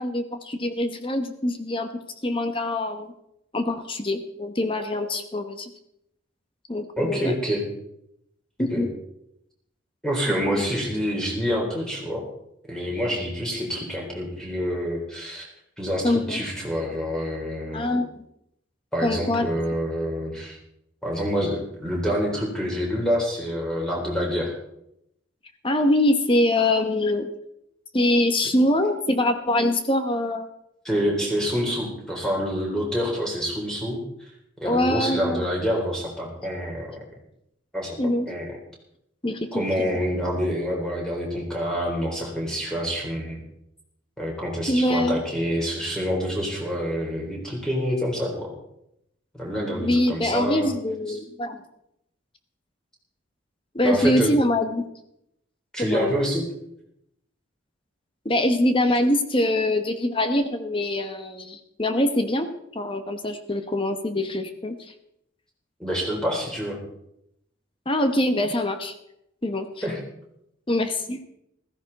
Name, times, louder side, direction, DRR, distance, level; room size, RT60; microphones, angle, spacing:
voice 1, 0.0-1.9 2.2-3.1 3.5-5.7 6.7-7.3 8.6-8.9 10.3-10.6 16.0-16.4 17.7-18.1 19.0-19.5 25.6-27.3 27.9-30.5 34.6-35.4 38.0-38.3 39.2-39.9 44.7-45.2 49.7-51.6 53.7-54.9 55.8-56.2 58.2-64.8 67.9-69.0 69.4-69.7 70.7-71.2, left 1 dB, 25° left, 7 dB, 1.0 m, -24 dB
voice 2, 7.0-7.6 8.7-8.9 10.0-12.3 12.7-15.4 15.8-17.9 18.9-20.6 21.0-24.5 30.8-34.0 34.6-36.9 37.7-38.0 38.3-38.6 39.5-43.4 44.2-48.5 49.4-50.7 51.1-51.2 53.8-54.3 55.7-56.4 65.8-66.8 69.8-70.0, equal, 5° left, -2 dB, 4.0 m, -27 dB
15.5 x 14.5 x 4.1 m, 0.79 s
head